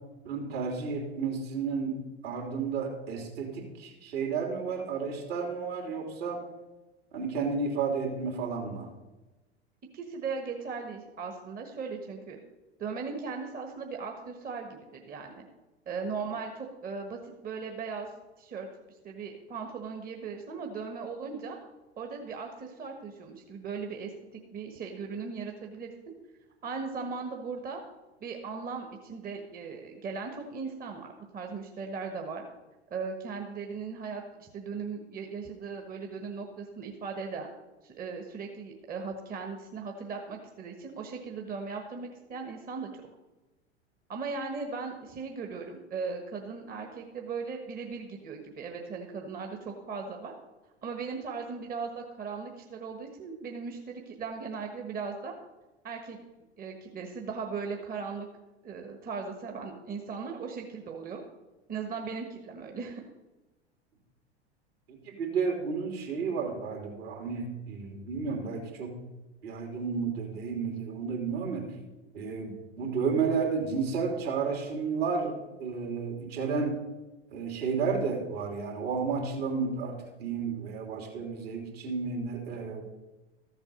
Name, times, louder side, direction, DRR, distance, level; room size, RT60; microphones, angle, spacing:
voice 1, 0.2-6.4 7.1-8.9 64.9-68.9 69.4-71.6 72.1-76.8 77.3-82.8, right 5 dB, 65° right, 1 dB, 3.1 m, -32 dB
voice 2, 9.9-12.4 12.8-15.4 15.9-18.1 18.4-18.7 19.0-21.6 22.0-25.9 26.6-27.8 28.2-32.4 32.9-37.5 37.8-42.9 44.1-50.3 50.8-55.3 55.8-56.2 56.6-58.3 58.6-61.2 61.7-63.0, right 5 dB, 25° right, 3 dB, 1.3 m, -38 dB
13.5 x 7.4 x 5.3 m, 1.1 s
figure-of-eight pair, 85°, 33 cm